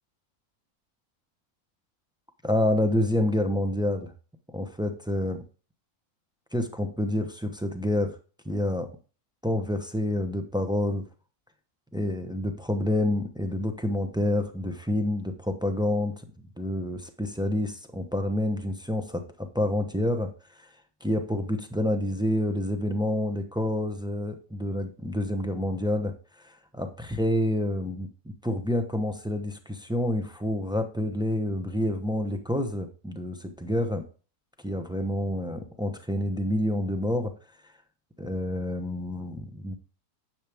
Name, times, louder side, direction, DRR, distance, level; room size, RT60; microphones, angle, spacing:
voice 1, 2.4-4.1 4.5-5.4 6.5-8.2 8.4-8.9 9.4-11.0 11.9-16.1 16.6-20.3 20.6-20.7 21.0-26.1 26.4-28.1 28.4-34.0 34.6-37.3 38.2-39.7, left 1 dB, 5° right, 6 dB, 0.4 m, -28 dB
10.0 x 7.0 x 3.5 m, 0.37 s
omnidirectional pair, 1.7 m